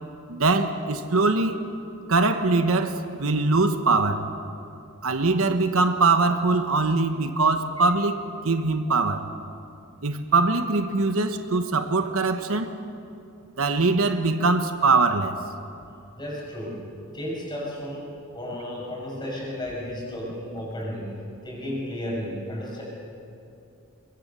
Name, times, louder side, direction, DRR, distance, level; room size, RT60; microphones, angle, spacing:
voice 1, 0.3-1.6 2.1-4.3 5.0-9.3 10.0-12.7 13.6-15.4, right 3 dB, 75° right, 8 dB, 1.2 m, -22 dB
voice 2, 16.2-16.9 17.1-22.8, left 1 dB, 20° left, -3 dB, 6.4 m, -33 dB
23.5 x 22.5 x 6.8 m, 2.7 s
head